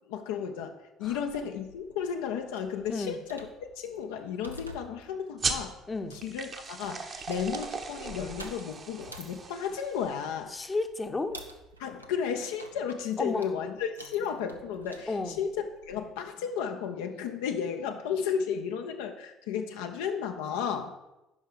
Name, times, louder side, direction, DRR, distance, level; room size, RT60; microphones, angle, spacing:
voice 1, 0.1-0.7 1.0-3.5 3.8-5.8 6.1-10.5 11.8-20.9, left 7 dB, 65° left, 5 dB, 0.5 m, -33 dB
sound 1, 1.0-16.1, right 1 dB, 90° right, 0.6 m, -51 dB
sound 2, 5.4-10.5, right 4 dB, 40° right, 1.0 m, -37 dB
voice 2, 5.9-6.2 10.5-11.4 13.2-13.5 15.1-15.4, left 3 dB, 20° left, 8 dB, 0.8 m, -32 dB
9.3 x 5.5 x 5.0 m, 0.96 s
figure-of-eight pair, 55°, 0 cm